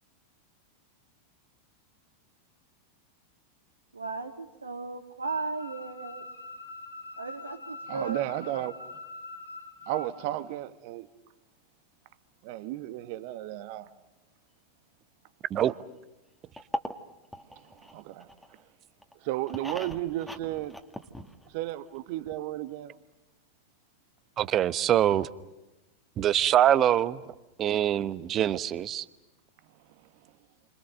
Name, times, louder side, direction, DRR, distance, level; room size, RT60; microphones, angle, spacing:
voice 1, 3.9-6.2 7.2-8.2, right 4 dB, 75° right, 2.2 m, -36 dB
sound 1, 5.3-10.1, left 3 dB, 80° left, 7.4 m, -44 dB
voice 2, 7.9-8.7 9.9-11.1 12.4-13.9 17.9-18.3 19.2-20.7 21.5-22.9, right 14 dB, 45° right, 1.6 m, -33 dB
sound 2, 16.6-18.6 19.0-21.7 21.9-22.0 22.3-22.4, equal, ahead, 1.9 m, -39 dB
voice 3, 24.4-25.3 26.2-27.2 27.6-29.0, right 11 dB, 30° right, 1.0 m, -24 dB
30.0 x 26.0 x 6.7 m
figure-of-eight pair, 90°, 0 cm